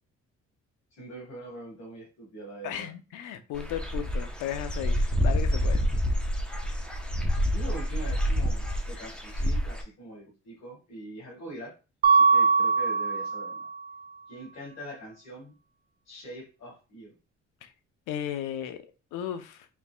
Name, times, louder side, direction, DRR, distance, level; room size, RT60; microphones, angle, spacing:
voice 1, 0.9-2.9 6.9-7.0 7.5-11.7 12.1-13.7 14.3-15.6 16.1-17.1, right 1 dB, 60° left, 1.6 m, -43 dB
voice 2, 2.6-5.8 17.6-17.7 18.1-19.7, left 10 dB, 85° left, 0.6 m, -35 dB
Dog / Bird, 3.5-9.8, equal, 5° left, 0.8 m, -27 dB
Mallet percussion, 12.0-13.8, right 5 dB, 35° right, 0.4 m, -22 dB
4.6 x 3.3 x 2.2 m
cardioid pair, 90°, 30 cm